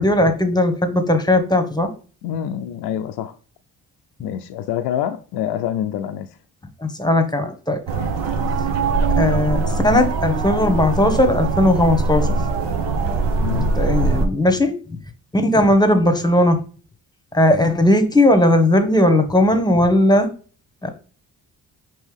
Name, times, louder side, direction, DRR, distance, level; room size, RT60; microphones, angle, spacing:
voice 1, 0.0-1.9 6.8-7.8 9.2-12.3 13.4-14.8 15.3-16.6 17.3-20.3 20.8-20.9, left 1 dB, 10° left, 1.0 m, -17 dB
voice 2, 2.2-3.4 4.2-6.3 13.4-13.7, left 10 dB, 65° left, 0.5 m, -26 dB
sound 1, 7.9-14.3, right 3 dB, 75° right, 0.8 m, -21 dB
5.3 x 2.9 x 3.4 m
hypercardioid pair, 50°, 44 cm